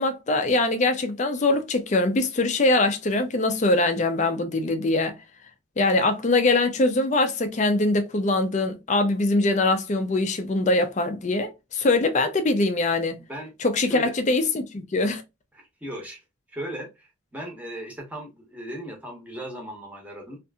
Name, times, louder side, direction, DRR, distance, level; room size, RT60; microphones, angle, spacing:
voice 1, 0.0-5.1 5.8-13.2 13.6-15.2, left 2 dB, 35° left, 0.4 m, -23 dB
voice 2, 13.2-14.1 15.5-16.2 16.5-20.4, right 1 dB, 5° right, 0.8 m, -37 dB
2.7 x 2.5 x 2.2 m
head